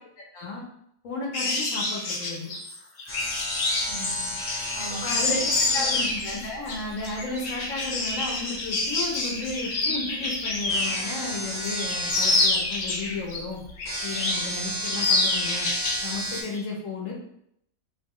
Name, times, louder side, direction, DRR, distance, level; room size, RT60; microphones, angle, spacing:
voice 1, 1.0-2.5 5.0-5.4 5.7-13.6 14.0-15.7 16.0-17.1, left 3 dB, 85° left, -2 dB, 1.2 m, -33 dB
sound 1, 1.3-11.1 11.5-13.4 13.8-14.5 14.8-16.1 16.3-16.6, left 3 dB, 65° left, 0.4 m, -27 dB
sound 2, 3.1-16.4, equal, 20° left, 0.7 m, -34 dB
voice 2, 3.9-5.9, right 3 dB, 40° right, -5 dB, 0.3 m, -40 dB
2.9 x 2.1 x 3.6 m, 0.72 s
omnidirectional pair, 1.3 m